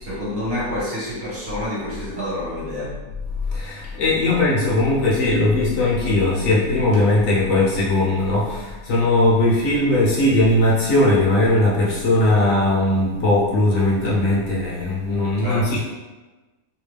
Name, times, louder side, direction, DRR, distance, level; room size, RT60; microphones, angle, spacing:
voice 1, 0.1-2.9 4.3-4.4 15.4-15.7, left 1 dB, 45° right, -8 dB, 1.2 m, -28 dB
voice 2, 3.3-15.8, left 1 dB, 65° left, -5 dB, 1.0 m, -19 dB
2.8 x 2.2 x 3.2 m, 1.2 s
omnidirectional pair, 1.6 m